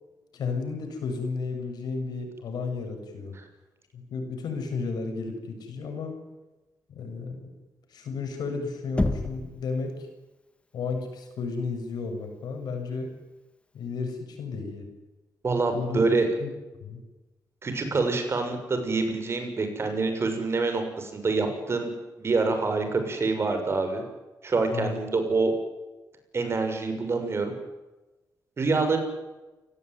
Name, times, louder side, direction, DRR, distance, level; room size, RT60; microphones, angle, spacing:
voice 1, 0.3-3.4 3.9-6.2 6.9-7.5 7.9-10.1 10.7-13.1 13.7-14.9 15.7-16.5 16.8-17.0 24.7-24.9, left 4 dB, 85° left, 5 dB, 7.3 m, -33 dB
Knock, 9.0-9.6, left 2 dB, 15° left, 2.0 m, -27 dB
voice 2, 15.4-16.3 17.6-21.9 22.2-24.0 24.4-25.5 26.3-27.5 28.6-29.0, right 3 dB, 40° right, 6 dB, 6.6 m, -26 dB
29.0 x 18.0 x 9.6 m, 1.1 s
wide cardioid pair, 120°, 7 cm